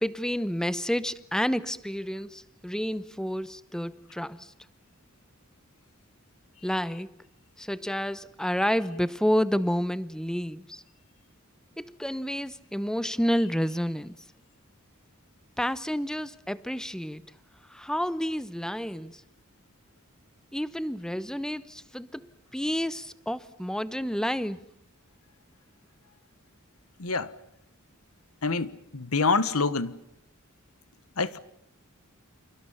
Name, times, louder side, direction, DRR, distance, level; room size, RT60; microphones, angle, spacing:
voice 1, 0.0-4.5 6.6-7.1 7.6-10.8 11.8-14.1 15.6-17.2 17.7-19.2 20.5-24.6, equal, 5° left, 0.9 m, -30 dB
voice 2, 27.0-27.3 28.4-30.0 31.2-31.4, left 4 dB, 90° left, 1.4 m, -26 dB
30.0 x 28.0 x 5.7 m
head